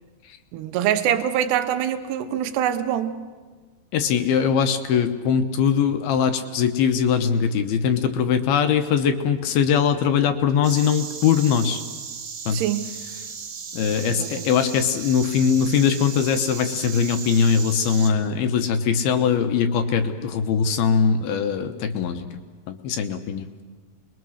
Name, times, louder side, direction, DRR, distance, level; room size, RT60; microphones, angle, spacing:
voice 1, 0.5-3.2 12.5-12.9 14.1-14.5, right 10 dB, 75° right, 8 dB, 3.0 m, -24 dB
voice 2, 3.9-11.8 12.5-12.6 13.7-22.3 22.7-23.5, left 7 dB, 70° left, 7 dB, 2.6 m, -21 dB
Insect, 10.6-18.1, right 6 dB, 60° right, 3.5 m, -36 dB
27.5 x 21.5 x 6.4 m, 1.3 s
omnidirectional pair, 5.0 m